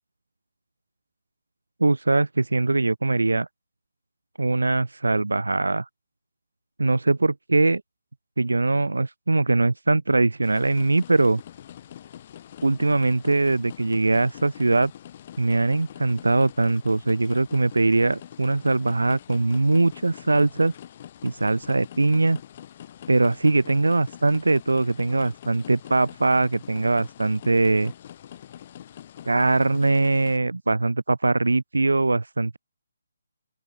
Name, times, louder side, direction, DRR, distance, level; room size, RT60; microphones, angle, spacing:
voice 1, 1.8-3.5 4.4-5.8 6.8-7.8 8.4-11.4 12.6-14.9 15.4-20.7 21.2-22.4 23.1-27.9 29.2-32.6, right 2 dB, 75° right, 1.2 m, -21 dB
sound 1, 10.4-30.4, left 10 dB, 35° left, 2.4 m, -44 dB
open air
figure-of-eight pair, 145°, 0 cm